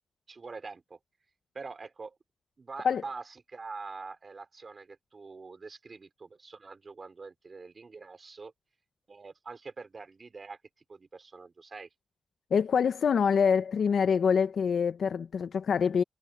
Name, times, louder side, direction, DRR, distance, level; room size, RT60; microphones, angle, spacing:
voice 1, 0.3-1.0 1.5-2.2 2.6-8.5 9.1-10.6 10.9-11.9, right 4 dB, 45° right, 4.3 m, -44 dB
voice 2, 12.5-16.0, left 6 dB, 80° left, 0.6 m, -25 dB
wide cardioid pair, 95°, 0 cm